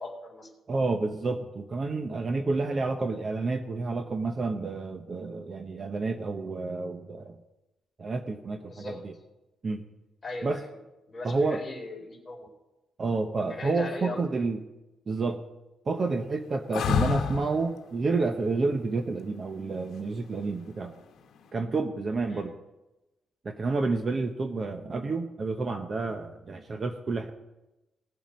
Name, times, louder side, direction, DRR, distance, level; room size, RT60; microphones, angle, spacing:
voice 1, 0.0-0.5 8.6-9.0 10.2-10.8 11.1-12.5 13.5-14.4 22.3-22.5, left 2 dB, 20° left, -1 dB, 4.1 m, -39 dB
voice 2, 0.7-7.4 8.0-9.1 9.6-9.8 10.4-10.6 11.2-11.6 13.0-14.6 15.1-15.4 15.9-20.9 21.5-22.5 23.4-27.3, right 3 dB, 35° right, 7 dB, 0.8 m, -29 dB
sound 1, 16.7-17.7 20.3-20.9, left 7 dB, 75° left, 1.1 m, -27 dB
19.0 x 7.3 x 5.2 m, 0.99 s
cardioid pair, 145°, 0 cm